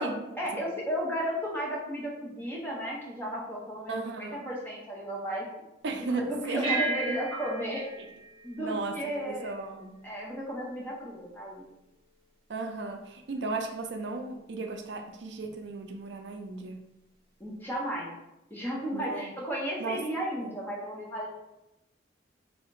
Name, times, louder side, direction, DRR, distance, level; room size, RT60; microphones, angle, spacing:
voice 1, 0.0-5.5 6.1-7.9 8.4-9.5 10.0-11.7 17.4-18.1 18.5-21.3, equal, 10° left, -3 dB, 0.9 m, -34 dB
voice 2, 3.9-4.4 5.8-6.8 8.6-9.9 12.5-16.8 18.9-19.3 19.8-20.0 20.4-20.5, right 3 dB, 70° right, 5 dB, 0.5 m, -35 dB
sound 1, 6.6-9.4, right 3 dB, 35° right, 1.0 m, -35 dB
3.2 x 2.8 x 4.5 m, 0.91 s
head